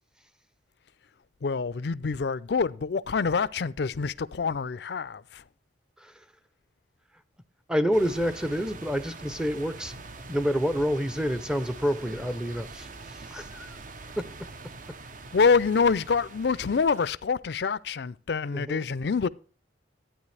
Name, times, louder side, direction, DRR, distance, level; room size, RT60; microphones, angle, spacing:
voice 1, 1.4-5.4 15.3-19.3, left 5 dB, 60° left, 0.4 m, -26 dB
voice 2, 7.7-9.9 10.3-13.8 14.2-14.3 18.5-18.9, equal, 5° right, 0.6 m, -28 dB
sound 1, 7.9-17.1, right 3 dB, 45° right, 0.7 m, -44 dB
12.0 x 9.1 x 3.3 m
head